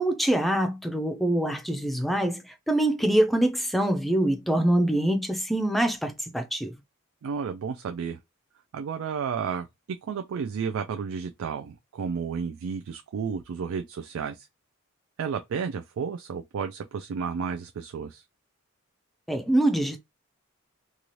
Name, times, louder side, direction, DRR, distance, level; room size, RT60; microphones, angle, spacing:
voice 1, 0.0-6.7 19.3-20.0, right 1 dB, ahead, 0.4 m, -24 dB
voice 2, 7.2-8.2 8.7-9.7 10.0-14.5 15.2-18.2, right 6 dB, 85° right, 0.4 m, -32 dB
2.7 x 2.4 x 3.0 m
head